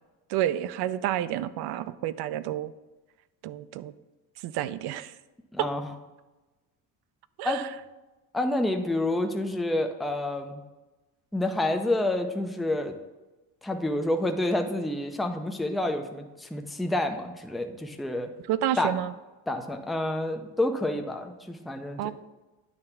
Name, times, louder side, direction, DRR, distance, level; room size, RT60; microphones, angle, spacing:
voice 1, 0.3-2.7 3.4-3.9 4.4-5.1 5.6-5.7 7.4-7.7 18.5-19.1 22.0-22.1, right 12 dB, 70° right, 15 dB, 0.5 m, -29 dB
voice 2, 5.5-5.9 7.4-7.6 8.3-10.6 11.3-13.0 13.6-18.3 18.8-18.9 19.5-22.1, left 1 dB, ahead, 4 dB, 0.3 m, -28 dB
9.7 x 3.3 x 5.8 m, 1.1 s
cardioid pair, 150°, 40 cm